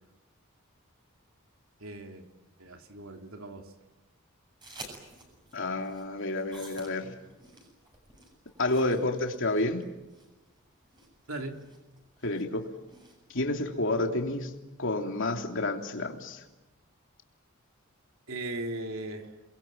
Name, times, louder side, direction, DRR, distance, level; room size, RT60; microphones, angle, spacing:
voice 1, 1.8-2.3 2.6-3.7 11.3-11.6 18.3-19.4, right 2 dB, 75° right, 4 dB, 3.1 m, -38 dB
sound 1, 4.6-13.4, right 2 dB, 20° right, 7.9 m, -51 dB
voice 2, 5.5-7.1 8.6-9.8 12.2-12.7 13.3-14.5 14.8-16.4, left 2 dB, 65° left, 3 dB, 3.1 m, -29 dB
29.0 x 22.0 x 9.0 m, 1.0 s
head